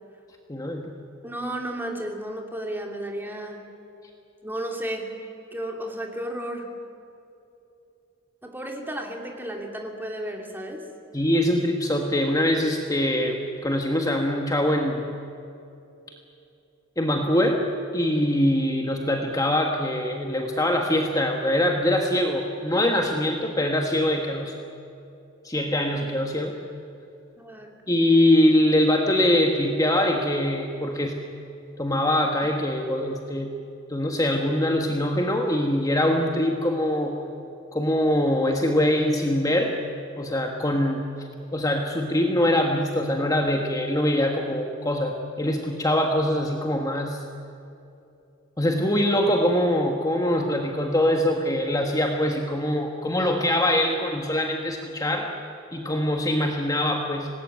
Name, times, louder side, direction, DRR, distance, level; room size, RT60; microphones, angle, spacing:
voice 1, 0.5-0.9 11.1-15.1 17.0-17.6 17.9-24.5 25.4-26.5 27.9-31.2 31.8-33.5 33.9-37.1 37.7-39.8 40.2-41.0 41.5-47.2 48.6-55.3 55.7-57.3, left 1 dB, 15° left, 2 dB, 1.5 m, -23 dB
voice 2, 1.2-3.6 4.4-5.1 5.5-6.7 8.4-10.8 27.4-27.7, right 1 dB, 10° right, 2 dB, 2.8 m, -33 dB
25.5 x 19.5 x 9.5 m, 2.7 s
head